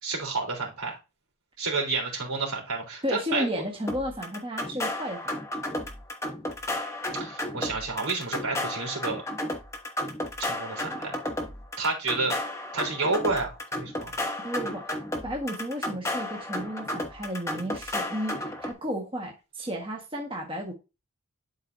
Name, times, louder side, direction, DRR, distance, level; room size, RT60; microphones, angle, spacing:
voice 1, 0.0-1.0 1.6-3.4 7.2-9.2 10.4-11.2 11.8-12.4 12.7-14.1, right 3 dB, 80° right, 3.8 m, -30 dB
voice 2, 3.0-5.3 14.4-15.0 15.2-20.7, equal, 25° right, 1.5 m, -33 dB
sound 1, 3.9-18.7, left 1 dB, 15° left, 1.1 m, -33 dB
11.0 x 4.7 x 2.7 m
head